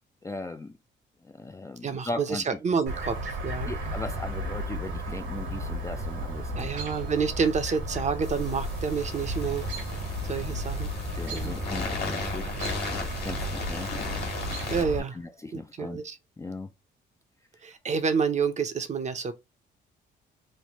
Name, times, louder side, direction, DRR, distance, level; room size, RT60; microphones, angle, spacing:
voice 1, 0.2-0.7 1.2-2.8 3.7-6.7 11.2-12.5 12.9-13.9 15.1-16.0 16.4-16.7, left 2 dB, 15° left, 0.3 m, -38 dB
voice 2, 1.8-3.7 6.6-9.7 10.3-10.9 11.3-11.6 14.7-15.2 15.5-16.2 17.6-19.3, right 5 dB, 35° right, 0.6 m, -28 dB
Chirp tweet, 2.9-15.0, equal, 75° right, 1.1 m, -34 dB
sound 1, 8.2-14.8, left 3 dB, 55° left, 1.5 m, -36 dB
sound 2, 12.6-15.3, left 4 dB, 75° left, 1.2 m, -47 dB
3.2 x 2.1 x 2.8 m
cardioid pair, 90°, 20 cm